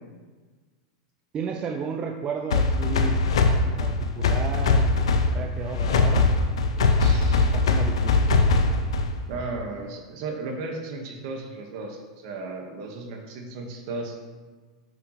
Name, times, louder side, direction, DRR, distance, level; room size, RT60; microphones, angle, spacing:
voice 1, 1.3-3.2 3.6-6.3 7.3-8.3, right 6 dB, 35° right, 3 dB, 0.6 m, -33 dB
sound 1, 2.5-9.3, left 3 dB, 80° left, 0.6 m, -21 dB
voice 2, 7.0-7.5 9.3-14.2, right 3 dB, 60° right, 2 dB, 1.4 m, -35 dB
7.9 x 5.8 x 3.1 m, 1.4 s
hypercardioid pair, 105°, 3 cm